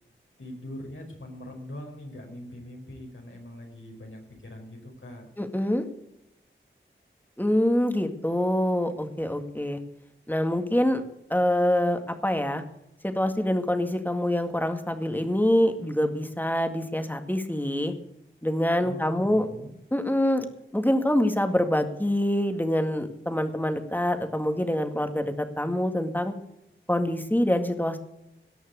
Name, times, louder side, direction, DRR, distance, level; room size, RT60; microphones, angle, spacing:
voice 1, 0.4-5.3 18.8-19.7, left 1 dB, 75° left, 1 dB, 4.7 m, -42 dB
voice 2, 5.4-5.8 7.4-9.8 10.3-11.0 11.3-12.6 13.0-17.9 18.4-19.5 19.9-20.5 20.7-26.3 26.9-28.0, left 1 dB, 10° left, 7 dB, 2.0 m, -25 dB
18.0 x 6.4 x 8.3 m, 0.84 s
wide cardioid pair, 45°, 20 cm